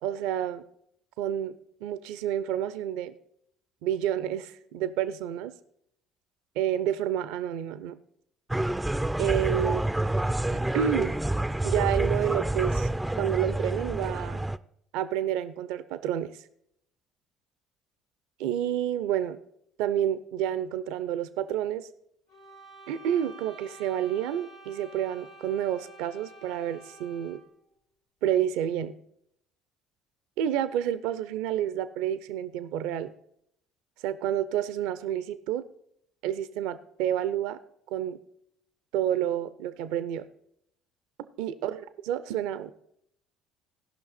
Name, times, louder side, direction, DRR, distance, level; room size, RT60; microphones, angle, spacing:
voice 1, 0.0-0.6 1.2-1.6 1.8-3.1 3.8-5.5 6.6-8.0 9.2-9.8 10.5-11.2 11.6-12.9 13.2-14.4 14.9-16.3 18.4-19.4 19.8-21.9 22.9-27.4 28.2-28.9 30.4-33.1 34.0-35.6 36.2-37.6 37.9-38.2 38.9-40.3 41.4-42.7, right 10 dB, 70° right, 13 dB, 0.5 m, -29 dB
sound 1, 8.5-14.6, right 1 dB, 10° right, 0.4 m, -28 dB
sound 2, 22.3-27.6, right 2 dB, 80° left, 2.2 m, -50 dB
16.0 x 5.7 x 4.1 m, 0.72 s
hypercardioid pair, 55°, 0 cm